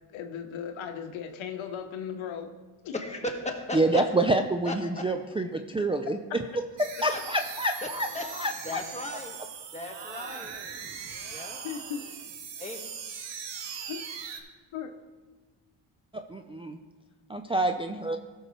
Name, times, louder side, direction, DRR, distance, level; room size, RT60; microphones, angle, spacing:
voice 1, 0.1-2.5 2.8-2.9 3.8-3.9 11.6-12.0 13.9-14.0 14.7-14.9, left 8 dB, 80° left, 6 dB, 1.0 m, -36 dB
voice 2, 2.9-3.8 4.6-4.7 7.1-7.2 8.1-8.2 8.6-9.3 9.7-10.6 11.3-11.6 12.6-12.9, left 1 dB, 15° left, 1 dB, 1.6 m, -36 dB
voice 3, 3.7-6.2 6.8-8.8 9.1-9.2 16.1-16.8 17.3-18.2, right 2 dB, 10° right, 4 dB, 0.4 m, -27 dB
sound 1, 6.8-14.4, right 7 dB, 65° right, 1.1 m, -40 dB
14.5 x 6.4 x 3.1 m, 1.3 s
cardioid pair, 75°, 46 cm